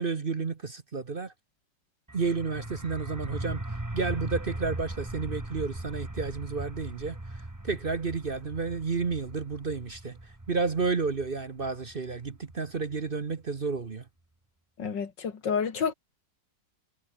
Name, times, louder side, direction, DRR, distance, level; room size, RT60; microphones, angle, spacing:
voice 1, 0.0-1.3 2.1-3.6 3.9-7.2 7.6-14.0, right 4 dB, 35° right, 1.1 m, -31 dB
sound 1, 2.1-13.6, right 1 dB, 10° right, 1.6 m, -39 dB
voice 2, 14.8-15.9, left 6 dB, 90° left, 2.8 m, -29 dB
omnidirectional pair, 1.9 m